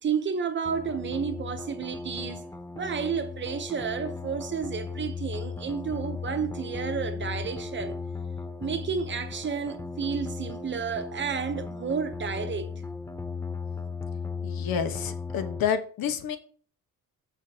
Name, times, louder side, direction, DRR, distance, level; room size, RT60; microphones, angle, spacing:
voice 1, 0.0-2.5 2.7-8.0 8.6-12.7, right 6 dB, 35° right, 0.8 m, -31 dB
sound 1, 0.6-15.6, left 4 dB, 10° left, 0.5 m, -36 dB
voice 2, 14.4-16.4, left 8 dB, 90° left, 1.2 m, -29 dB
13.5 x 4.9 x 2.8 m
cardioid pair, 160°, 34 cm